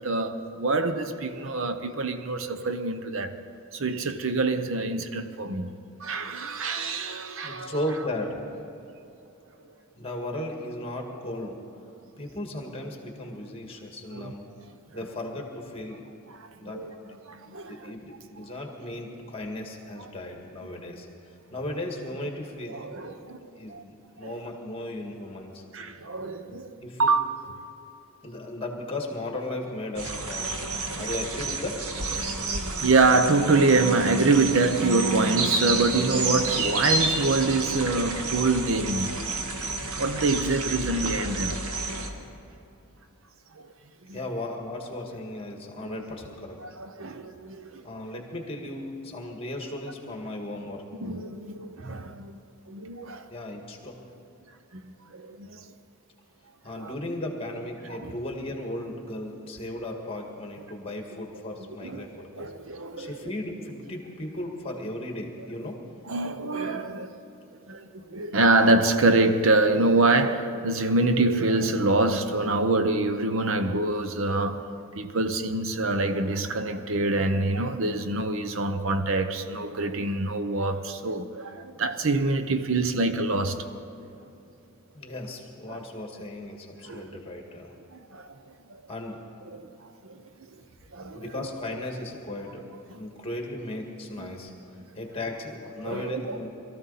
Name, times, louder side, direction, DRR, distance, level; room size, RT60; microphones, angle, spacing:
voice 1, 0.0-3.3 3.7-7.7 14.1-14.3 16.3-16.5 16.7-16.9 17.3-17.9 22.7-23.8 24.2-24.3 25.7-27.3 30.8-31.0 32.2-32.5 32.8-39.2 40.0-41.6 44.1-44.2 45.8-46.0 46.8-47.8 51.0-52.4 52.7-53.3 54.7-55.7 56.8-56.9 57.9-58.2 61.8-62.0 62.3-63.2 66.1-67.1 67.7-74.6 74.9-83.7 85.7-85.8 86.9-87.1 88.1-88.3 88.7-88.8 89.5-89.7 90.0-90.2 90.9-91.2 94.2-94.4 95.8-96.4, right 3 dB, 60° right, 0.7 m, -25 dB
voice 2, 7.4-8.4 10.0-11.6 12.2-14.5 14.9-16.0 16.6-21.1 21.5-23.1 23.6-25.6 26.8-27.1 28.2-30.6 31.0-31.8 44.1-46.6 47.8-50.8 53.3-54.0 56.6-62.5 63.0-65.8 84.9-87.7 88.9-89.2 91.1-94.5 95.0-96.5, left 1 dB, 25° left, 1.8 m, -36 dB
sound 1, 30.0-42.1, right 3 dB, 80° right, 1.4 m, -29 dB
22.5 x 14.0 x 4.1 m
head